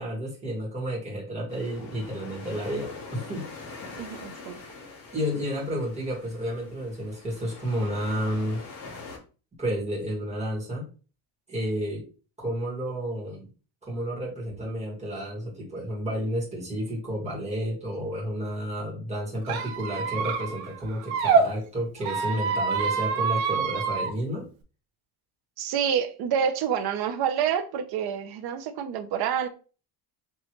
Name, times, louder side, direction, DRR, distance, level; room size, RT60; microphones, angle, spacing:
voice 1, 0.0-3.5 5.1-8.6 9.6-10.9 11.5-12.0 12.4-13.5 13.8-24.5, equal, 15° right, 1.9 m, -31 dB
sound 1, 1.5-9.2, left 3 dB, 45° left, 1.5 m, -43 dB
voice 2, 4.0-4.6 25.6-29.5, right 8 dB, 50° right, 0.7 m, -28 dB
Squeak, 19.4-21.4 22.0-24.1, right 5 dB, 70° right, 1.1 m, -26 dB
4.6 x 3.0 x 3.1 m
cardioid pair, 175°, 48 cm